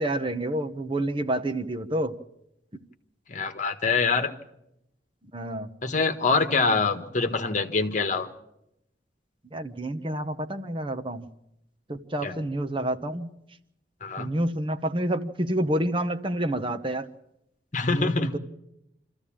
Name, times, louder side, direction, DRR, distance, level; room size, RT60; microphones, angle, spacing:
voice 1, 0.0-2.1 5.3-5.7 9.5-11.3 11.9-13.3 14.2-17.1 17.9-18.4, right 1 dB, 30° right, 9 dB, 1.0 m, -28 dB
voice 2, 3.3-4.3 5.8-8.3 12.2-12.4 14.0-14.3 17.7-18.3, left 4 dB, 45° left, 8 dB, 1.5 m, -25 dB
25.5 x 14.5 x 8.8 m, 0.83 s
head